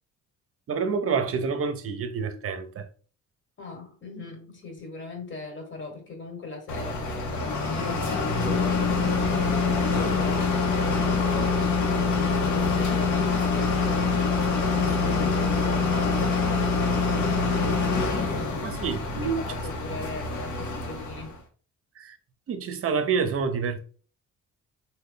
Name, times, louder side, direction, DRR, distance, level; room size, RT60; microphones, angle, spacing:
voice 1, 0.7-2.9 18.6-19.4 22.0-22.2 22.5-23.9, right 5 dB, 50° right, 0.6 m, -28 dB
voice 2, 3.6-11.9 12.3-16.8 17.6-18.4 19.2-21.4, left 3 dB, 40° left, 1.4 m, -39 dB
sound 1, 6.7-21.4, left 4 dB, 70° left, 0.8 m, -25 dB
3.1 x 2.2 x 3.8 m
cardioid pair, 90°, 30 cm